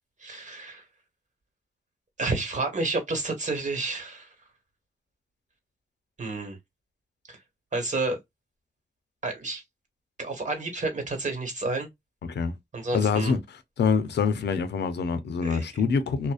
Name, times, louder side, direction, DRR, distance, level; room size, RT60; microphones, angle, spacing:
voice 1, 0.2-0.8 2.2-4.3 6.2-6.6 7.3-7.4 7.7-8.2 9.2-9.6 10.2-11.9 12.7-13.3 15.4-15.8, right 3 dB, 45° right, 1.3 m, -30 dB
voice 2, 12.9-13.4 13.8-16.3, left 5 dB, 80° left, 0.5 m, -25 dB
2.5 x 2.1 x 2.3 m
cardioid pair, 45°, 17 cm